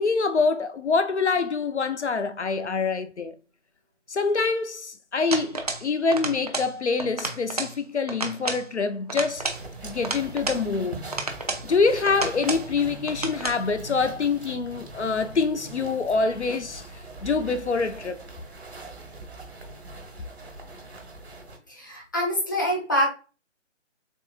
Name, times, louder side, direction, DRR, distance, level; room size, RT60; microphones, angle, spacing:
voice 1, 0.0-3.3 4.1-9.5 9.8-11.1 11.6-16.8 17.2-18.2, left 4 dB, 65° left, 0.5 m, -25 dB
sound 1, 5.3-5.9 6.1-6.7 7.0-7.8 8.1-8.7 9.1-10.6 11.1-11.7 12.1-12.7 13.1-13.6, right 2 dB, 30° right, 0.5 m, -31 dB
sound 2, 9.3-21.6, right 2 dB, 55° right, 1.6 m, -41 dB
voice 2, 21.7-23.1, equal, 15° left, 0.6 m, -25 dB
6.9 x 2.8 x 2.3 m
figure-of-eight pair, 150°, 38 cm